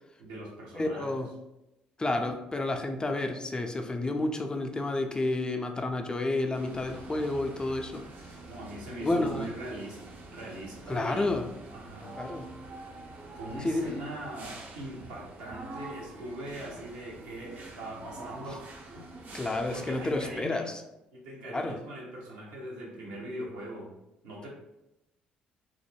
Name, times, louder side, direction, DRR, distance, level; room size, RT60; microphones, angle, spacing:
voice 1, 0.2-1.1 8.4-10.0 10.3-11.3 11.7-12.2 13.3-19.4 19.7-20.7 21.1-23.9 24.2-24.5, right 1 dB, 80° right, -4 dB, 0.8 m, -41 dB
voice 2, 0.7-1.3 2.0-8.0 9.0-9.5 10.9-11.5 12.2-12.5 13.6-14.0 19.3-20.8 21.5-21.8, left 2 dB, 20° left, 4 dB, 0.4 m, -30 dB
sound 1, 6.5-20.4, right 2 dB, 50° right, 0.5 m, -46 dB
2.4 x 2.0 x 3.2 m, 0.92 s
hypercardioid pair, 50°, 4 cm